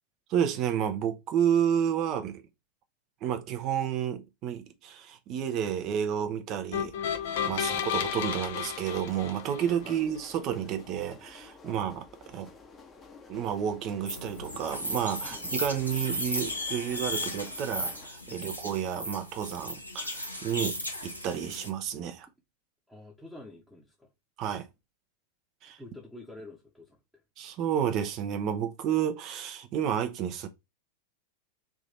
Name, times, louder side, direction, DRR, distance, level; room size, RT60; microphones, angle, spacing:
voice 1, 0.3-2.4 3.2-6.9 7.4-12.5 13.3-20.7 21.0-22.3 24.4-24.7 25.6-25.8 27.4-30.5, right 9 dB, 35° right, 0.7 m, -31 dB
sound 1, 6.7-9.9, left 8 dB, 55° left, 0.5 m, -32 dB
sound 2, 7.3-18.1, left 4 dB, 20° left, 0.8 m, -51 dB
sound 3, 14.1-21.7, left 1 dB, 85° left, 1.0 m, -36 dB
voice 2, 22.9-24.1 25.8-27.2, left 2 dB, ahead, 0.9 m, -49 dB
3.5 x 2.9 x 4.0 m
figure-of-eight pair, 90°, 0 cm